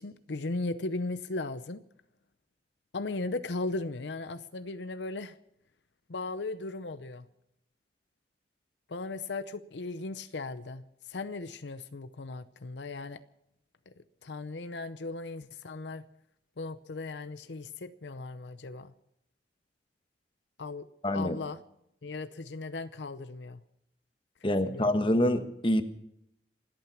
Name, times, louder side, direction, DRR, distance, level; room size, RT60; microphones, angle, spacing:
voice 1, 0.0-1.8 2.9-5.4 6.1-7.3 8.9-10.8 11.1-13.2 13.9-14.0 14.2-16.1 16.6-18.9 20.6-21.6 22.0-23.6 24.7-24.9, left 3 dB, 80° left, 0.7 m, -37 dB
voice 2, 21.0-21.4 24.4-25.8, left 1 dB, 30° left, 1.3 m, -26 dB
27.5 x 9.1 x 5.8 m
head